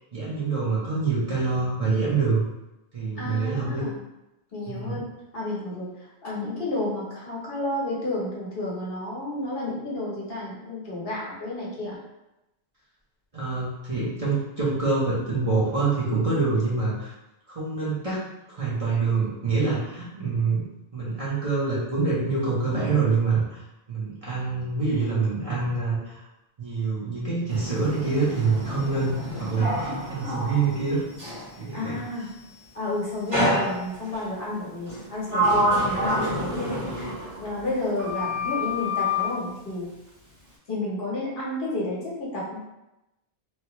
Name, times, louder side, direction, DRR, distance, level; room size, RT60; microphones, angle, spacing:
voice 1, 0.1-2.4 2.9-3.8 4.7-5.0 13.3-17.1 17.5-18.2 18.5-20.6 20.9-23.6 23.9-26.2 26.6-31.0 31.6-32.0, right 4 dB, 35° right, -8 dB, 0.8 m, -26 dB
voice 2, 3.2-4.0 4.5-5.0 5.3-12.0 31.7-32.3 32.7-37.1 37.4-39.9 40.7-42.4, left 2 dB, 60° left, -5 dB, 1.1 m, -31 dB
Sliding door, 27.5-31.5 33.3-34.2 34.9-37.7 38.0-39.3, equal, 85° right, 1.6 m, -27 dB
3.2 x 2.3 x 2.9 m, 0.93 s
omnidirectional pair, 1.1 m